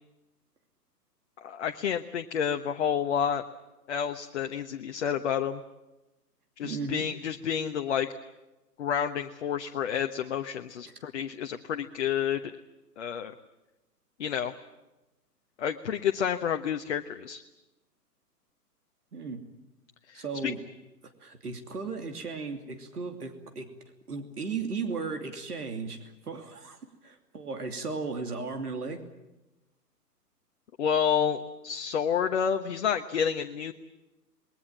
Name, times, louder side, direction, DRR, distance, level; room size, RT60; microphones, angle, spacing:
voice 1, 1.4-3.4 3.9-5.6 6.6-8.1 8.8-12.6 13.0-13.3 14.2-14.5 15.6-17.4 20.1-20.5 30.8-33.7, left 8 dB, 45° left, 6 dB, 1.2 m, -29 dB
voice 2, 6.6-7.0 19.1-19.4 20.1-20.6 21.2-23.7 24.1-29.0, right 4 dB, 65° right, 5 dB, 3.0 m, -36 dB
28.5 x 21.0 x 7.5 m, 1.0 s
figure-of-eight pair, 125°, 48 cm